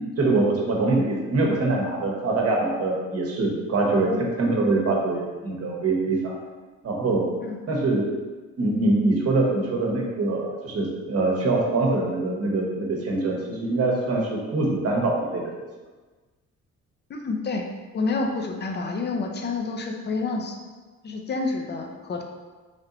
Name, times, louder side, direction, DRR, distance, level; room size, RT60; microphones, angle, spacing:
voice 1, 0.2-4.1 4.4-6.3 6.8-7.2 7.7-8.1 8.6-15.5, right 2 dB, 55° right, -2 dB, 1.0 m, -24 dB
voice 2, 17.1-17.6 17.9-20.6 21.0-22.3, left 3 dB, 35° left, 3 dB, 0.6 m, -28 dB
3.4 x 2.7 x 3.8 m, 1.3 s
cardioid pair, 90°, 30 cm